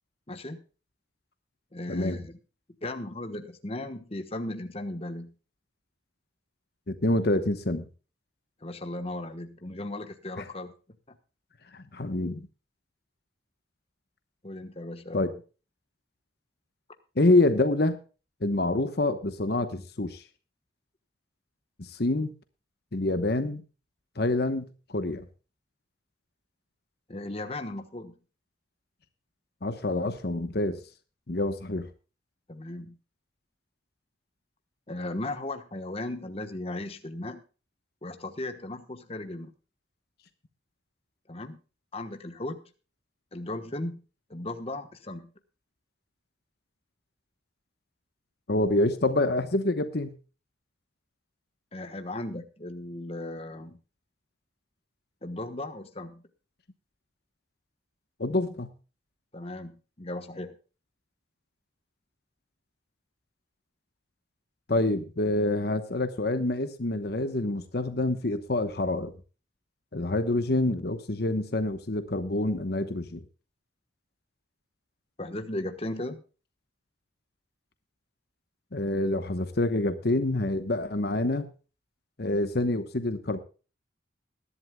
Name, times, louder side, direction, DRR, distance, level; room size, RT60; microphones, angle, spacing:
voice 1, 0.3-0.6 1.7-2.4 2.8-5.3 8.6-10.7 14.4-15.3 27.1-28.1 32.5-33.0 34.9-37.4 38.0-39.5 41.3-41.6 41.9-42.6 43.3-44.0 44.3-45.3 51.7-53.8 55.2-56.2 59.3-60.5 75.2-76.2, left 1 dB, 30° left, 8 dB, 1.2 m, -36 dB
voice 2, 1.9-2.2 6.9-7.9 10.4-10.5 11.7-12.5 15.1-15.3 17.2-18.0 18.4-20.2 21.8-22.3 22.9-23.6 24.2-25.2 29.6-30.8 31.3-31.9 48.5-50.1 58.2-58.7 64.7-69.1 69.9-73.2 78.7-81.5 82.2-83.4, left 2 dB, 55° left, 10 dB, 1.1 m, -27 dB
21.0 x 11.5 x 2.3 m, 0.34 s
head